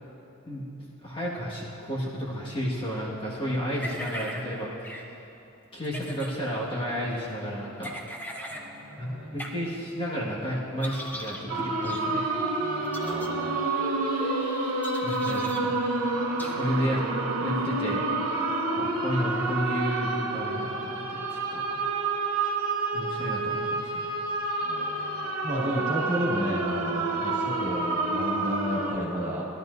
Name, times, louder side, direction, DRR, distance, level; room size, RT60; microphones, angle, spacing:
voice 1, 1.0-4.9 5.7-7.9 9.0-12.4 15.0-15.7 16.4-17.0 17.4-18.1 18.7-21.8 22.9-24.1, equal, 25° left, -6 dB, 1.7 m, -32 dB
sound 1, 3.8-4.4 4.8-5.0 5.8-6.3 7.8-8.6 9.4-9.5 10.8-11.4 11.8-12.0 12.8-13.3 14.8-15.6 16.4-16.5, equal, 10° left, 0.8 m, -38 dB
voice 2, 8.5-9.4 12.6-13.6 24.6-29.5, equal, 35° right, -6 dB, 2.3 m, -32 dB
sound 2, 11.5-28.9, right 3 dB, 85° right, 0.9 m, -29 dB
Singing, 11.8-17.0, equal, 60° left, 1.6 m, -34 dB
17.0 x 11.5 x 2.7 m, 2.9 s
head